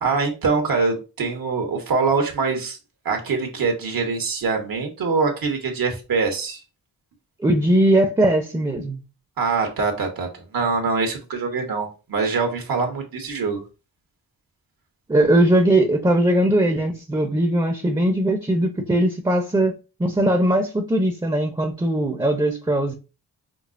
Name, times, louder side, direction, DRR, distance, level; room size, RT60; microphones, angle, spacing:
voice 1, 0.0-2.8 3.0-6.6 9.4-13.6, right 4 dB, 70° right, 1.2 m, -24 dB
voice 2, 7.4-9.0 15.1-19.7 20.0-22.9, right 1 dB, 10° right, 0.7 m, -20 dB
5.1 x 2.0 x 2.5 m
cardioid pair, 55°, 37 cm